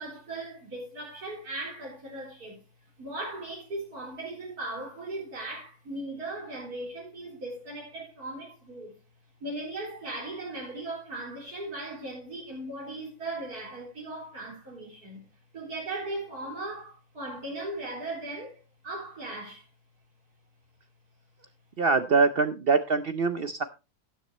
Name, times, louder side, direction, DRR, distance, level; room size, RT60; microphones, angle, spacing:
voice 1, 0.0-2.6 3.0-9.0 9.4-15.3 15.5-19.6, right 2 dB, 75° right, 4.3 m, -38 dB
voice 2, 21.8-23.6, right 4 dB, 55° right, 0.6 m, -24 dB
12.5 x 10.0 x 3.0 m
omnidirectional pair, 1.6 m